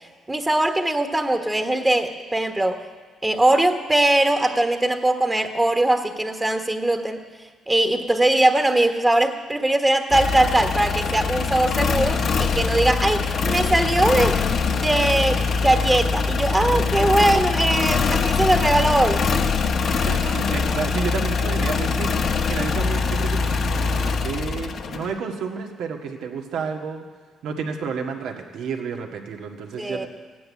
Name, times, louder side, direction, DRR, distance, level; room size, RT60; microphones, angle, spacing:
voice 1, 0.3-2.8 3.2-7.2 7.7-14.4 14.8-19.5 29.8-30.1, right 1 dB, 15° right, 5 dB, 1.4 m, -21 dB
sound 1, 10.1-25.2, left 4 dB, 60° left, 1.1 m, -23 dB
voice 2, 20.1-27.0 27.4-30.1, right 5 dB, 80° right, 3 dB, 1.8 m, -31 dB
15.5 x 9.5 x 9.6 m, 1.5 s
cardioid pair, 90°, 0 cm